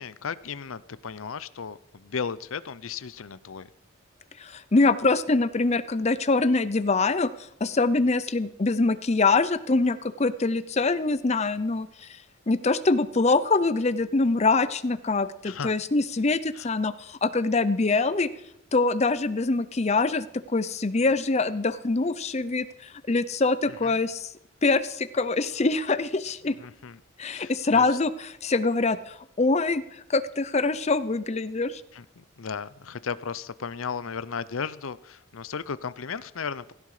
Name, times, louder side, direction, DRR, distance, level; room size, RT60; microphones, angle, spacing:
voice 1, 0.0-3.7 15.4-15.7 16.5-16.7 23.8-24.0 26.6-27.0 27.3-27.9 31.9-36.7, left 6 dB, 80° left, 16 dB, 0.7 m, -35 dB
voice 2, 4.4-18.3 18.7-24.3 24.6-26.6 27.2-31.8, left 3 dB, 30° left, 14 dB, 0.6 m, -24 dB
17.0 x 16.0 x 4.9 m, 0.76 s
head